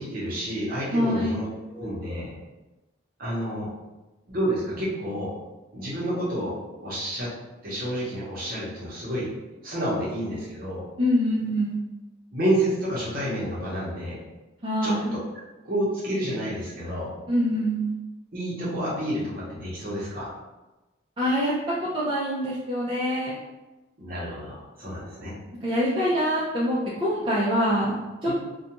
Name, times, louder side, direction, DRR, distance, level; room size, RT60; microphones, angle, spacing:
voice 1, 0.0-2.3 3.2-3.7 4.3-5.3 5.7-7.3 7.6-9.3 9.6-10.9 12.3-14.2 14.8-14.9 15.6-17.1 18.3-20.3 24.0-25.3 28.2-28.3, right 1 dB, 45° right, -6 dB, 0.8 m, -29 dB
voice 2, 0.9-1.4 11.0-11.8 14.6-15.1 17.3-17.9 21.2-21.5 21.9-23.3 25.6-28.3, equal, 25° right, -9 dB, 0.4 m, -25 dB
2.4 x 2.2 x 2.9 m, 1.1 s
head